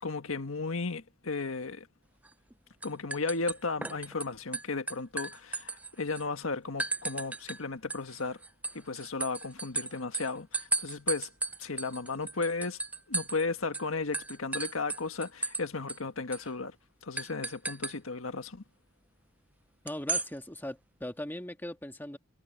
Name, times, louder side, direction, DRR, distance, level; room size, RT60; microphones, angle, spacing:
voice 1, 0.0-1.9 2.8-8.4 8.7-11.3 11.6-12.8 13.1-16.7 17.0-18.6, left 3 dB, 90° left, 1.6 m, -35 dB
sound 1, 2.2-2.5 2.8-4.2 4.5-6.2 6.8-7.6 7.9-13.4 13.7-13.9 14.1-15.6 15.9-16.0 16.3-16.5 17.2-17.9 19.9-20.3, right 3 dB, 5° right, 0.5 m, -35 dB
voice 2, 19.8-22.2, left 1 dB, 10° left, 1.7 m, -39 dB
head